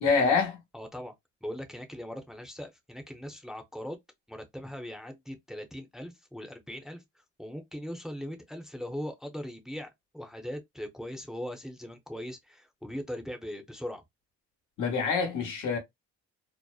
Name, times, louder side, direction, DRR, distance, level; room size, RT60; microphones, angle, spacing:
voice 1, 0.0-0.6 14.8-15.8, left 5 dB, 85° left, 1.0 m, -26 dB
voice 2, 0.7-1.1 1.4-4.0 4.3-14.0, equal, ahead, 0.5 m, -40 dB
2.6 x 2.0 x 2.3 m
cardioid pair, 90°, 30 cm